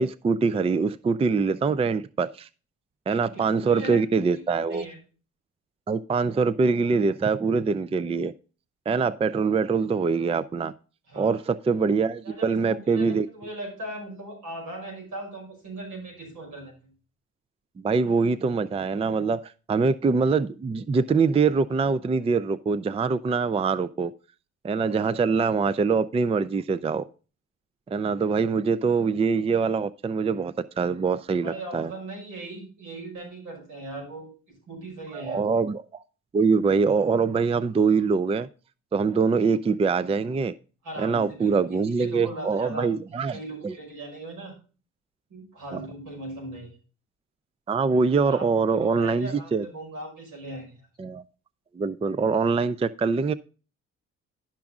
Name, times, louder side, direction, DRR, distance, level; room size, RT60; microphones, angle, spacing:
voice 1, 0.0-2.5 3.1-4.9 5.9-8.3 8.9-10.7 11.2-13.3 17.8-24.1 24.6-27.0 27.9-31.9 35.1-36.0 36.3-38.5 38.9-40.5 41.0-43.4 43.6-43.7 45.7-45.8 47.7-49.6 51.0-51.2 51.8-53.3, right 5 dB, 20° right, 16 dB, 0.4 m, -24 dB
voice 2, 3.3-4.1 4.3-5.0 11.1-11.4 12.2-16.9 31.4-35.4 40.8-44.5 45.3-46.7 48.2-48.5 48.7-50.8, right 1 dB, 80° right, 1 dB, 5.5 m, -39 dB
11.5 x 6.0 x 3.6 m, 0.35 s
cardioid pair, 90°, 30 cm